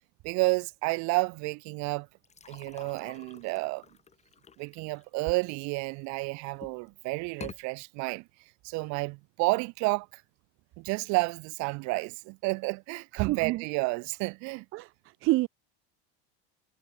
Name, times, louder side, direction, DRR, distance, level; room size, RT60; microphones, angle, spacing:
voice 1, 0.2-2.1 2.5-3.8 4.6-8.2 8.6-10.2 10.8-14.7, right 28 dB, 60° right, 2.1 m, -31 dB
sound 1, 2.2-6.0 6.5-6.9 7.3-7.6, left 6 dB, 20° left, 8.0 m, -49 dB
voice 2, 13.1-13.6 14.7-15.5, right 19 dB, 45° right, 0.7 m, -28 dB
cardioid pair, 145°, 32 cm